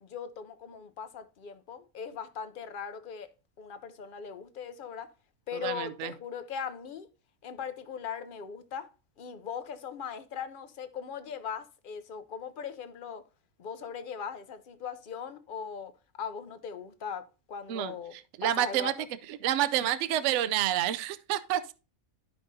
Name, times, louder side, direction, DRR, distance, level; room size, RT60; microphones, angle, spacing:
voice 1, 0.0-3.3 3.6-5.1 5.5-7.1 7.4-13.3 13.6-15.9 16.2-18.2 18.4-18.9, left 7 dB, 50° left, 0.7 m, -39 dB
voice 2, 5.5-6.1 17.7-18.9 19.3-21.7, right 12 dB, 70° right, 0.8 m, -29 dB
12.5 x 5.1 x 2.6 m
omnidirectional pair, 1.4 m